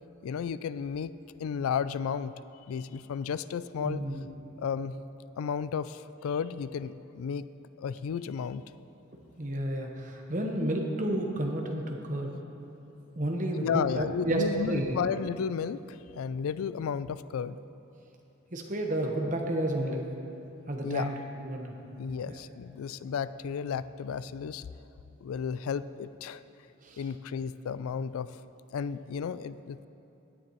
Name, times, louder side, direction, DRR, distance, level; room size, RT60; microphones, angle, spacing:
voice 1, 0.2-1.1 1.4-2.3 2.7-4.0 4.6-5.0 5.4-7.5 7.8-8.6 13.5-17.6 20.8-21.1 22.0-24.7 25.2-26.4 27.0-28.4 28.7-29.9, left 7 dB, 90° left, 15 dB, 0.3 m, -33 dB
voice 2, 3.8-4.3 9.4-12.4 13.2-15.0 18.5-20.1 20.7-21.1 21.4-21.7 22.3-22.4 26.8-27.0, right 1 dB, 40° right, 1 dB, 1.1 m, -31 dB
17.0 x 10.0 x 3.1 m, 2.9 s
head